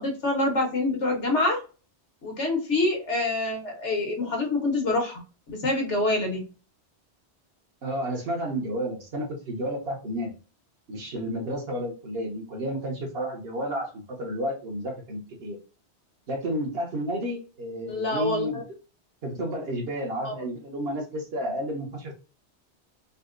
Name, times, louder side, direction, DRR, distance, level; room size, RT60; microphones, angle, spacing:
voice 1, 0.0-1.6 2.2-5.2 5.5-6.4 17.9-18.6 20.2-20.3, left 2 dB, 85° left, 1 dB, 1.5 m, -26 dB
voice 2, 7.8-10.4 10.9-15.6 16.3-18.6 19.2-22.1, equal, 60° right, 1 dB, 1.3 m, -31 dB
4.1 x 2.1 x 2.4 m, 0.34 s
omnidirectional pair, 1.2 m